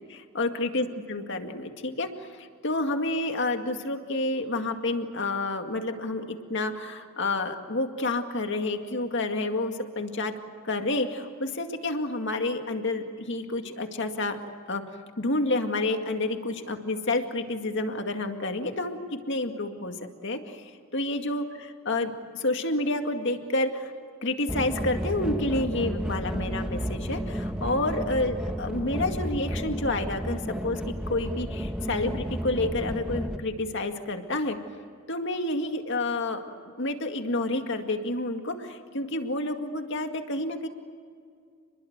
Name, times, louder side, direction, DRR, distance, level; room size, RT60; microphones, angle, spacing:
voice 1, 0.1-10.3 10.6-14.4 14.7-14.8 15.2-20.0 20.2-23.9 24.2-34.6 35.1-36.4 36.8-40.7, left 2 dB, 60° left, 5 dB, 2.1 m, -29 dB
sound 1, 24.5-33.4, equal, 5° right, 1.2 m, -32 dB
29.5 x 21.5 x 8.1 m, 2.2 s
head